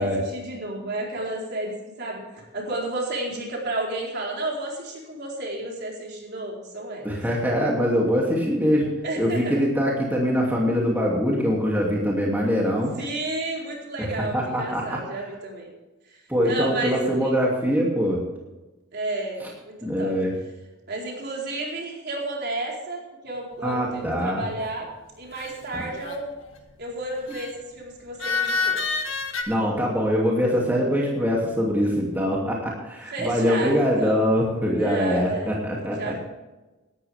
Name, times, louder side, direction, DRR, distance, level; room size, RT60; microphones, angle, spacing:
voice 1, 0.0-7.1 9.0-9.6 13.0-15.7 16.1-17.4 18.9-20.1 20.9-24.9 25.2-26.3 26.8-28.8 33.1-34.2 34.7-35.6 36.0-36.2, right 2 dB, 50° right, -2 dB, 4.4 m, -32 dB
voice 2, 7.0-8.9 9.2-12.9 14.3-15.0 16.3-18.2 19.4-19.5 19.8-20.3 23.6-24.4 25.7-25.8 29.5-36.1, equal, 10° right, -3 dB, 2.7 m, -23 dB
sound 1, 25.4-26.4 27.3-27.5 28.2-29.4, left 4 dB, 65° left, 2.0 m, -27 dB
17.5 x 12.5 x 3.6 m, 1.1 s
head